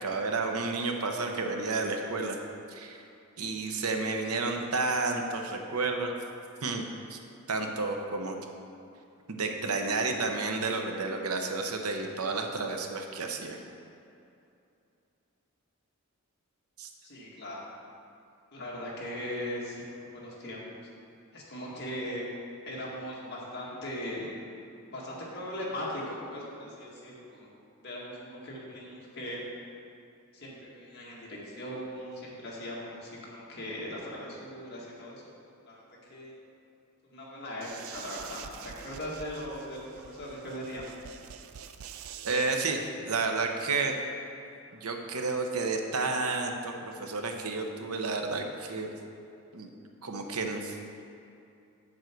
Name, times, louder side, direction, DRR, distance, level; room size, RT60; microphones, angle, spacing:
voice 1, 0.0-2.4 2.7-3.0 3.4-6.1 6.6-6.8 7.1-7.2 7.5-8.4 9.3-13.6 16.8-16.9 42.2-43.9 44.7-48.9 49.5-49.7 50.0-50.8, right 3 dB, 90° right, 3 dB, 0.9 m, -31 dB
voice 2, 17.0-17.7 18.5-20.6 21.3-22.3 22.7-24.3 24.9-27.5 27.8-29.4 30.3-35.2 35.7-36.3 37.0-40.9, equal, 50° left, -5 dB, 1.9 m, -39 dB
sound 1, 37.6-42.7, right 8 dB, 70° right, 0.4 m, -46 dB
7.9 x 7.4 x 4.6 m, 2.6 s
head